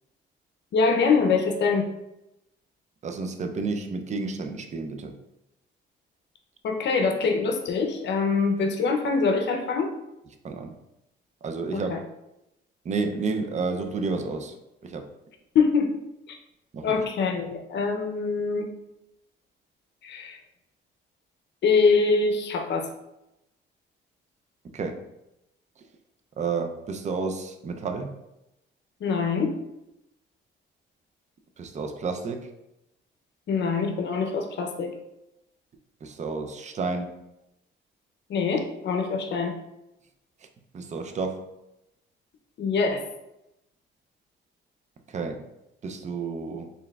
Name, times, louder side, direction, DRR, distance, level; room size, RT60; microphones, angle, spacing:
voice 1, 0.7-1.9 6.6-9.9 11.7-12.0 15.5-15.9 16.8-18.7 20.0-20.4 21.6-22.9 29.0-29.6 33.5-34.9 38.3-39.5 42.6-43.1, left 4 dB, 60° left, 3 dB, 0.6 m, -24 dB
voice 2, 3.0-5.1 10.4-10.7 11.4-11.9 12.8-14.5 14.8-15.0 16.7-17.0 24.7-25.0 26.4-28.1 31.6-32.5 36.0-37.2 40.7-41.5 45.1-45.4 45.8-46.7, right 4 dB, 35° right, 6 dB, 0.5 m, -31 dB
4.4 x 3.4 x 2.3 m, 0.90 s
cardioid pair, 90°, 20 cm